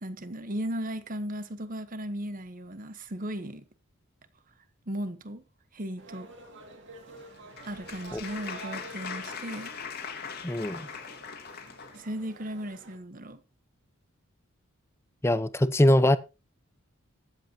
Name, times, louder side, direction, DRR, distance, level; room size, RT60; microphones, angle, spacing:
voice 1, 0.0-3.6 4.9-5.4 5.7-6.3 7.7-9.7 11.9-13.4, equal, 40° right, 1.2 m, -36 dB
sound 1, 6.0-13.0, right 2 dB, 55° right, 2.4 m, -48 dB
Applause, 7.2-12.0, left 6 dB, 50° left, 1.9 m, -41 dB
voice 2, 10.4-10.9 15.2-16.2, left 1 dB, 10° left, 0.6 m, -22 dB
22.0 x 7.9 x 2.9 m
head